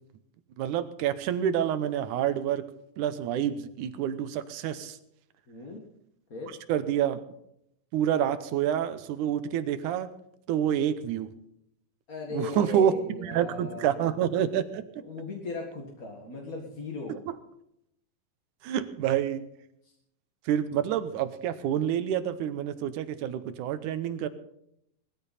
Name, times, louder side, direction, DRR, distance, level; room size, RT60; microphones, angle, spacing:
voice 1, 0.6-2.6 3.0-5.0 6.7-7.2 7.9-10.1 10.5-11.3 12.3-12.9 13.2-14.8 17.1-17.2 18.6-19.5 20.5-24.3, right 10 dB, 75° right, 12 dB, 2.1 m, -28 dB
voice 2, 5.5-5.8 6.3-6.5 12.1-14.2 15.0-17.2 19.8-19.9, left 3 dB, 35° left, 0 dB, 1.5 m, -38 dB
19.0 x 13.5 x 4.2 m, 0.75 s
omnidirectional pair, 4.1 m